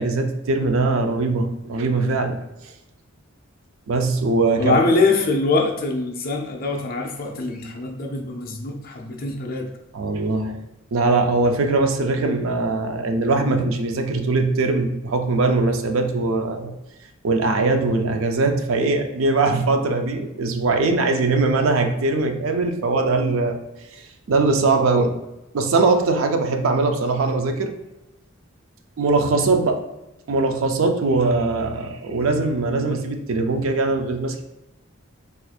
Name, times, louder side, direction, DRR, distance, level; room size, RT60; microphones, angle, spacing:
voice 1, 0.0-2.4 3.9-4.8 9.9-10.6 10.9-16.7 17.2-23.6 23.9-25.2 25.5-27.7 29.0-29.8 30.3-34.4, right 3 dB, 70° right, 5 dB, 0.4 m, -21 dB
voice 2, 4.6-9.7, left 3 dB, 45° left, 1 dB, 0.5 m, -23 dB
4.2 x 2.4 x 2.3 m, 0.94 s
head